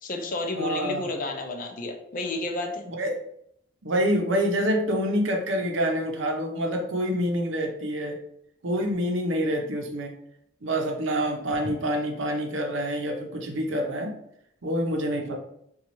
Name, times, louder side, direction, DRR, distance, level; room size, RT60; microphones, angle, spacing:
voice 1, 0.0-2.8 11.6-11.7, left 2 dB, 45° left, 4 dB, 0.5 m, -31 dB
voice 2, 0.6-1.1 2.9-3.2 3.8-8.2 8.6-10.1 10.6-14.1 14.6-15.4, equal, 65° right, 3 dB, 0.6 m, -27 dB
4.0 x 2.3 x 3.0 m, 0.72 s
head